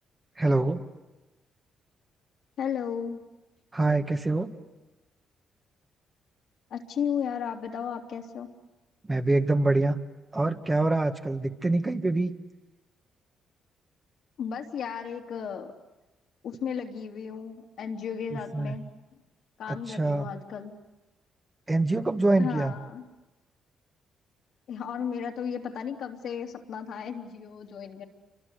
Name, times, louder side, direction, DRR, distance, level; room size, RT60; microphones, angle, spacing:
voice 1, 0.4-0.8 3.7-4.5 9.1-10.0 10.3-12.3 18.3-18.7 19.7-20.3 21.7-22.7, right 2 dB, 20° right, 5 dB, 1.7 m, -25 dB
voice 2, 2.6-3.2 6.7-8.5 14.4-15.7 16.4-18.9 19.6-20.7 22.4-23.0 24.7-28.0, left 7 dB, 70° left, 1 dB, 3.2 m, -34 dB
28.5 x 25.0 x 8.2 m, 1.1 s
cardioid pair, 90°, 0 cm